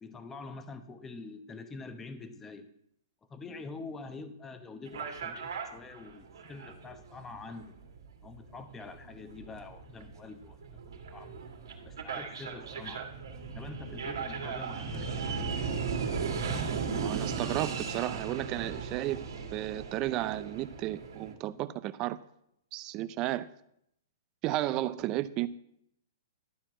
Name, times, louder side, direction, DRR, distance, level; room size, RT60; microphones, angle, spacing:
voice 1, 0.0-2.7 3.3-7.7 8.2-10.8 11.1-11.4 11.8-13.1 13.5-15.5, left 4 dB, 15° left, 0.9 m, -45 dB
sound 1, 4.9-21.3, right 5 dB, 80° right, 2.1 m, -37 dB
voice 2, 17.0-19.2 19.5-22.2 22.7-23.5 24.4-25.5, right 15 dB, 30° right, 0.5 m, -33 dB
12.5 x 4.5 x 7.5 m
hypercardioid pair, 140°, 2 cm